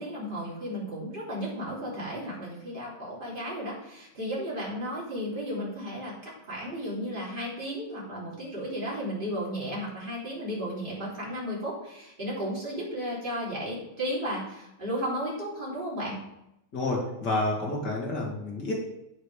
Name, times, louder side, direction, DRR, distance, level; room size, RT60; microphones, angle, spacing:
voice 1, 0.0-16.2, equal, 25° right, -6 dB, 3.4 m, -34 dB
voice 2, 16.7-18.7, left 2 dB, 55° left, -2 dB, 2.7 m, -29 dB
9.0 x 6.6 x 5.0 m, 0.84 s
omnidirectional pair, 2.2 m